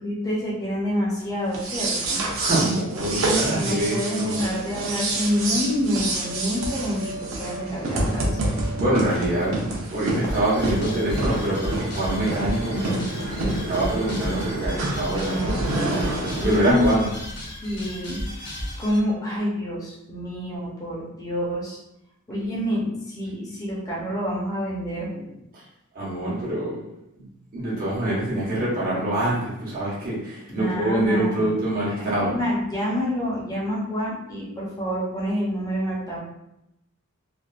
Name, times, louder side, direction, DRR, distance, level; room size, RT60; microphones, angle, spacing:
voice 1, 0.0-2.3 3.5-8.4 15.2-15.7 16.4-16.8 17.6-18.2 18.8-21.8 22.3-25.3 30.5-31.5 31.9-36.2, equal, 15° left, -6 dB, 0.7 m, -27 dB
sound 1, 1.5-16.7, right 2 dB, 65° right, 0.7 m, -28 dB
voice 2, 2.3-4.3 8.8-13.0 13.5-15.7 16.4-17.1 25.5-25.6 25.9-26.8 27.2-27.3 27.5-32.3, right 1 dB, 40° right, -8 dB, 1.0 m, -25 dB
sound 2, 3.6-13.0, equal, 15° right, 0.4 m, -41 dB
sound 3, 10.3-19.0, equal, 50° left, 0.8 m, -33 dB
3.3 x 2.4 x 2.4 m, 0.85 s
head